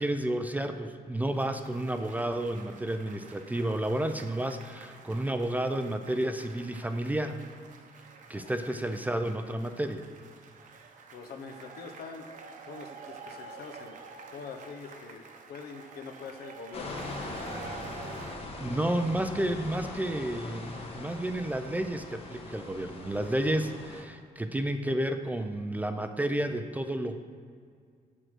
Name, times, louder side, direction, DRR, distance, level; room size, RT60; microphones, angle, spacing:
voice 1, 0.0-7.4 8.3-10.1 18.6-27.2, right 1 dB, 10° right, 7 dB, 0.4 m, -31 dB
sound 1, 1.2-18.4, right 5 dB, 55° right, 0.9 m, -49 dB
voice 2, 8.3-8.8 11.1-12.3 12.7-14.0 14.3-15.2 15.5-17.2, left 5 dB, 80° left, 5 dB, 0.9 m, -44 dB
sound 2, 16.7-24.0, left 2 dB, 40° left, 1.1 m, -41 dB
7.8 x 6.2 x 6.1 m, 2.1 s
cardioid pair, 170°, 16 cm